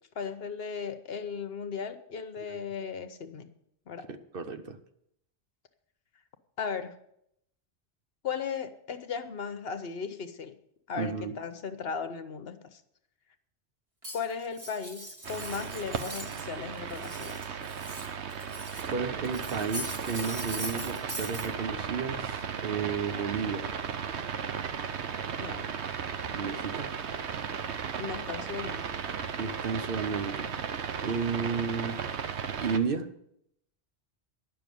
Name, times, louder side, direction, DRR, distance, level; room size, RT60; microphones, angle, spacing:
voice 1, 0.1-3.5 3.9-4.1 6.6-6.9 8.2-10.5 10.9-12.8 14.1-17.6 25.4-25.7 28.0-28.9, left 6 dB, 65° left, 1.1 m, -36 dB
voice 2, 4.1-4.8 10.9-11.3 18.9-23.7 26.3-26.9 29.4-30.6 31.0-32.0 32.6-33.2, right 5 dB, 60° right, 1.0 m, -33 dB
Cutlery silverware, 14.0-16.5 16.8-18.9 19.2-21.5, equal, 30° right, 1.9 m, -41 dB
sound 1, 15.2-32.8, right 7 dB, 85° right, 1.1 m, -35 dB
10.5 x 6.8 x 9.2 m
omnidirectional pair, 1.1 m